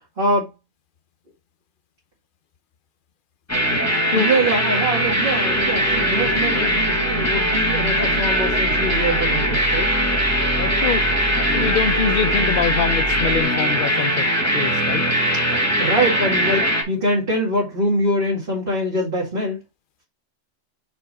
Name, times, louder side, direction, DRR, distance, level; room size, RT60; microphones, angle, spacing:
voice 1, 0.2-0.5 4.1-10.0 15.8-19.6, right 1 dB, 55° right, 2.4 m, -23 dB
sound 1, 3.5-16.8, equal, 15° left, 1.8 m, -21 dB
sound 2, 5.0-13.4, equal, 35° left, 1.5 m, -30 dB
voice 2, 10.5-11.0 11.5-14.3 14.5-15.0, left 7 dB, 55° left, 0.7 m, -24 dB
5.8 x 4.5 x 4.1 m
omnidirectional pair, 1.1 m